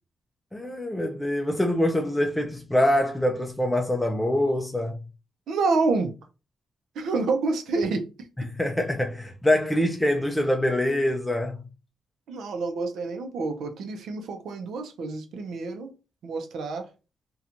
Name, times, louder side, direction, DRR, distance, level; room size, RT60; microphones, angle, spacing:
voice 1, 0.5-5.0 8.4-11.7, left 1 dB, 5° left, 0.4 m, -24 dB
voice 2, 5.5-6.1 6.9-8.0 12.3-15.9 16.2-16.9, right 3 dB, 80° right, 0.5 m, -28 dB
2.8 x 2.3 x 2.5 m
cardioid pair, 90°, 0 cm